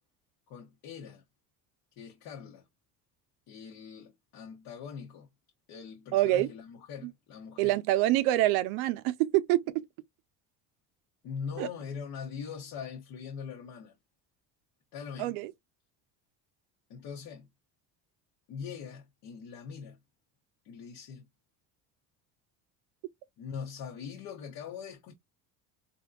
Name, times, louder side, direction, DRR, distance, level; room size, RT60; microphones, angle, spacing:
voice 1, 0.5-1.2 2.0-2.6 3.5-5.3 5.7-7.7 11.2-14.0 14.9-15.4 16.9-17.5 18.5-20.0 20.6-21.2 23.4-25.1, left 6 dB, 65° left, 0.9 m, -42 dB
voice 2, 6.1-6.5 7.0-7.1 7.6-9.8 11.6-11.7 15.2-15.5, right 15 dB, 85° right, 0.6 m, -26 dB
3.6 x 2.7 x 2.4 m
cardioid pair, 135°, 37 cm